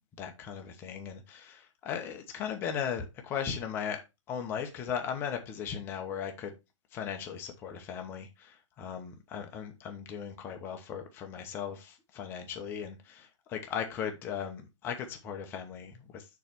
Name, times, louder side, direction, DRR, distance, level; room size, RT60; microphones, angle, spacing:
voice 1, 0.2-4.0 4.3-6.5 6.9-16.3, left 8 dB, 15° left, 0.9 m, -37 dB
6.9 x 3.3 x 5.9 m
hypercardioid pair, 165°, 16 cm